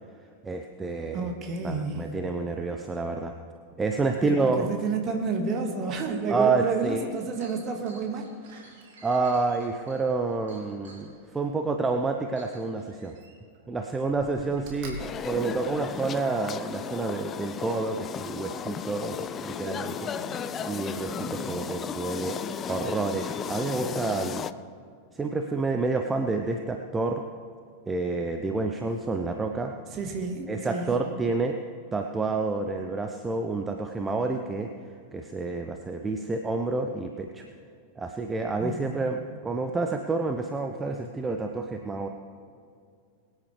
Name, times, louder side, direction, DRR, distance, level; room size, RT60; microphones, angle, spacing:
voice 1, 0.4-1.3 1.6-3.3 3.8-4.7 6.3-7.0 9.0-13.2 13.7-22.4 22.7-24.5 25.1-27.2 27.9-29.7 30.5-31.6 31.9-34.7 35.1-37.4 38.0-42.1, right 3 dB, 15° right, 5 dB, 0.7 m, -29 dB
voice 2, 1.1-2.1 4.2-8.3 20.1-20.6 21.1-21.7 29.9-31.0 38.6-39.2, right 4 dB, 30° right, 3 dB, 1.8 m, -31 dB
Chink clink, 6.7-6.8 7.1-11.1 11.8-11.9 12.4-12.6, right 1 dB, 65° right, 4.0 m, -54 dB
Slam, 7.7-11.6 12.7-13.6 14.0-16.3 16.8-16.9, equal, 50° right, 2.3 m, -47 dB
sound 1, 15.0-24.5, left 7 dB, 25° left, 0.4 m, -35 dB
22.0 x 9.8 x 3.3 m, 2.3 s
figure-of-eight pair, 90°, 0 cm